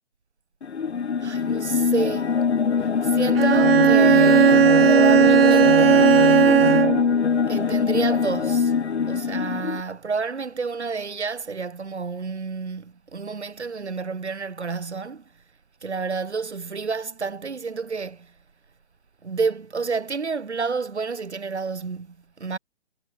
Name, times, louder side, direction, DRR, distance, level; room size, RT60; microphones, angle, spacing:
sound 1, 0.6-9.8, left 6 dB, 75° left, 2.0 m, -22 dB
voice 1, 1.2-2.4 3.0-6.2 7.5-8.7 9.1-15.2 15.8-18.3 19.2-22.6, right 4 dB, 80° right, 5.1 m, -29 dB
Bowed string instrument, 3.3-7.2, right 8 dB, 60° right, 4.3 m, -16 dB
figure-of-eight pair, 135°, 33 cm